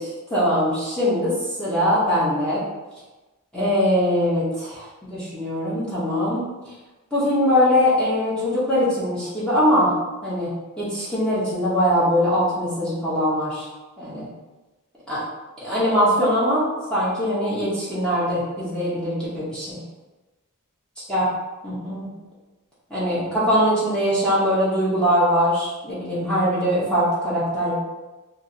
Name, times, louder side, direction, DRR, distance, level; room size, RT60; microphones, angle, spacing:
voice 1, 0.0-1.3 1.6-2.6 3.5-4.7 5.1-6.4 7.1-9.9 10.2-10.5 10.8-13.7 14.0-14.2 15.1-15.2 15.6-16.6 16.9-19.8 21.1-21.3 21.6-22.1 22.9-27.7, equal, 5° left, -11 dB, 0.8 m, -21 dB
2.9 x 2.8 x 2.6 m, 1.1 s
head